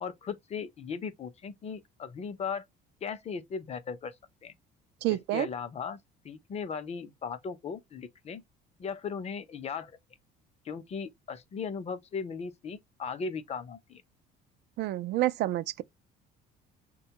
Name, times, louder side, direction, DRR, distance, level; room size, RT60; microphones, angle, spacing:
voice 1, 0.0-2.6 3.0-4.1 4.4-4.5 5.1-6.0 6.2-8.4 8.8-10.0 10.6-14.0, left 6 dB, 35° left, 0.6 m, -37 dB
voice 2, 5.0-5.5 14.8-15.8, right 15 dB, 65° right, 0.5 m, -28 dB
6.1 x 2.3 x 2.8 m
cardioid pair, 110°, 19 cm